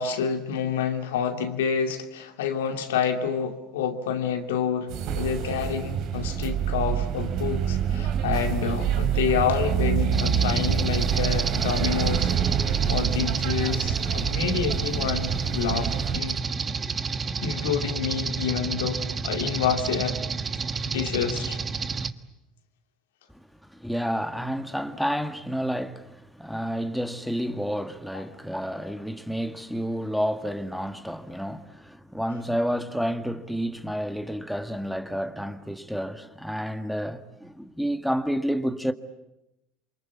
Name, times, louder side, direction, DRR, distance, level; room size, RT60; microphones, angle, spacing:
voice 1, 0.0-12.3 12.9-16.4 17.4-20.2 20.8-21.6, left 7 dB, 80° left, 2.5 m, -28 dB
sound 1, 4.9-16.2, right 8 dB, 60° right, 2.8 m, -27 dB
sound 2, 10.1-22.1, right 5 dB, 30° right, 1.4 m, -30 dB
voice 2, 23.3-38.9, equal, ahead, 1.8 m, -30 dB
28.5 x 24.5 x 8.5 m
hypercardioid pair, 75°, 0 cm